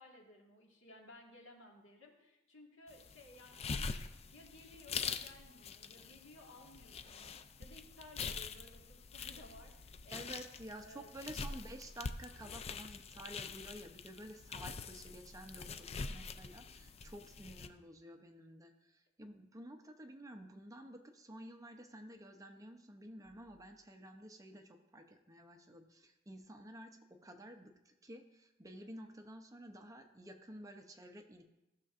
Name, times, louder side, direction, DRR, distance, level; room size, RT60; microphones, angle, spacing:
voice 1, 0.0-4.0 4.3-10.4 10.8-11.1, left 1 dB, 90° left, 0 dB, 1.8 m, -58 dB
sound 1, 2.9-17.7, left 5 dB, 35° left, 0.4 m, -45 dB
voice 2, 10.1-31.4, right 1 dB, 20° right, 5 dB, 0.6 m, -52 dB
14.5 x 6.5 x 2.5 m, 0.93 s
head